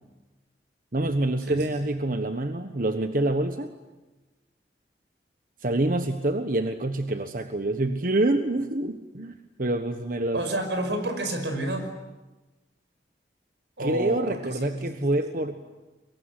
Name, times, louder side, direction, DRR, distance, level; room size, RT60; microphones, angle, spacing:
voice 1, 0.9-3.7 5.6-10.4 13.8-15.6, right 2 dB, 50° right, 7 dB, 1.3 m, -26 dB
voice 2, 10.3-11.9 13.8-15.1, right 1 dB, 90° right, 7 dB, 5.6 m, -30 dB
24.5 x 22.0 x 9.7 m, 1.1 s
head